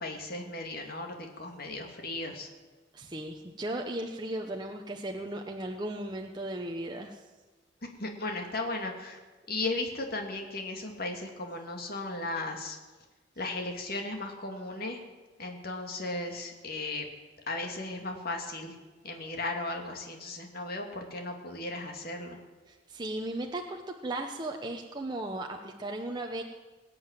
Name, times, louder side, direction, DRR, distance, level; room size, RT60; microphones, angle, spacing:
voice 1, 0.0-2.5 7.8-9.2 9.5-12.8 13.4-15.0 15.4-17.1 17.5-18.7 19.0-22.4, left 2 dB, 50° left, 3 dB, 2.3 m, -36 dB
voice 2, 2.9-7.2 22.7-26.4, right 1 dB, 20° right, 2 dB, 0.8 m, -36 dB
20.5 x 7.7 x 9.0 m, 1.3 s
head